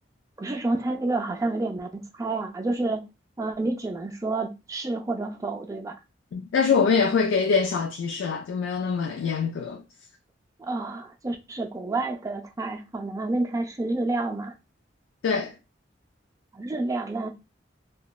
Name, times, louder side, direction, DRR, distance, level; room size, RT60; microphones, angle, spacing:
voice 1, 0.4-3.1 3.4-6.0 10.6-14.6 16.5-17.3, right 2 dB, 15° right, 0.3 m, -29 dB
voice 2, 6.3-9.8 15.2-15.5, left 5 dB, 80° left, 0.3 m, -24 dB
2.9 x 2.2 x 2.2 m
head